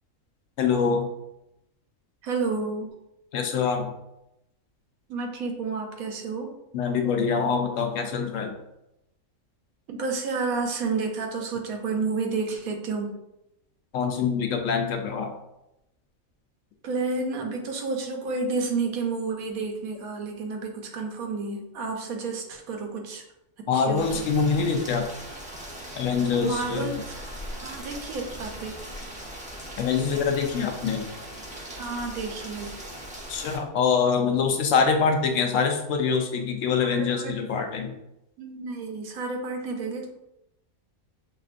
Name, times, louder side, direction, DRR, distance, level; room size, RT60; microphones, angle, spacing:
voice 1, 0.6-1.1 3.3-3.9 6.7-8.6 13.9-15.3 23.7-25.1 26.0-27.0 29.8-31.0 33.3-37.9, left 5 dB, 70° left, 4 dB, 0.9 m, -24 dB
voice 2, 2.2-2.9 5.1-6.5 9.9-13.1 16.8-23.2 23.6-24.3 26.4-27.1 27.6-28.8 31.7-32.8 36.8-37.3 38.4-40.1, right 4 dB, 85° right, 3 dB, 1.1 m, -30 dB
Rain, 23.9-33.6, equal, 10° right, 0.4 m, -39 dB
5.8 x 2.5 x 2.4 m, 0.87 s
omnidirectional pair, 1.5 m